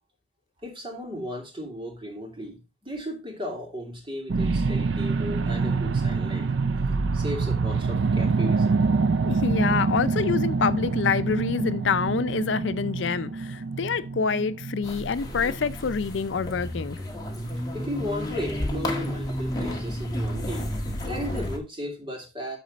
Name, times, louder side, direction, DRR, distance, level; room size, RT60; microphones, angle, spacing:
voice 1, 0.6-6.5 7.1-8.7 17.7-20.7 21.0-22.6, equal, 25° right, 2.8 m, -35 dB
sound 1, 4.3-16.9 17.4-17.6, right 4 dB, 70° right, 0.5 m, -26 dB
voice 2, 9.2-17.0, left 5 dB, 65° left, 0.5 m, -26 dB
sound 2, 14.8-21.6, left 1 dB, 20° left, 1.7 m, -31 dB
12.5 x 4.2 x 4.1 m
head